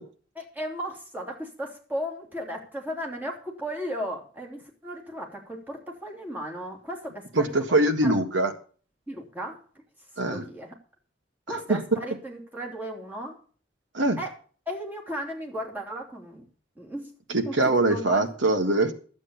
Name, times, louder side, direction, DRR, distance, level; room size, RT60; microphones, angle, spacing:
voice 1, 0.3-8.1 9.1-9.6 10.3-10.7 11.5-13.4 14.2-14.3 14.7-16.4 16.8-17.1 17.5-18.2, equal, 10° right, 0 dB, 3.0 m, -35 dB
voice 2, 7.4-8.5 10.2-10.4 11.5-11.8 13.9-14.2 17.3-18.9, right 2 dB, 85° right, 6 dB, 1.7 m, -23 dB
12.0 x 8.2 x 7.1 m, 0.41 s
head